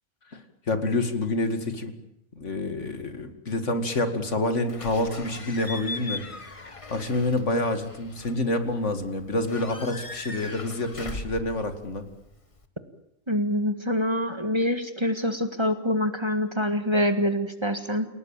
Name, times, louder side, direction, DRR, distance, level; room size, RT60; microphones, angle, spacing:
voice 1, 0.3-1.9 2.4-12.0, left 2 dB, 75° left, 8 dB, 2.5 m, -28 dB
Slam / Squeak / Alarm, 4.7-12.7, left 3 dB, 25° left, 1.6 m, -40 dB
voice 2, 13.3-18.1, equal, 20° right, 8 dB, 1.8 m, -25 dB
29.0 x 18.0 x 9.0 m, 0.81 s
omnidirectional pair, 1.3 m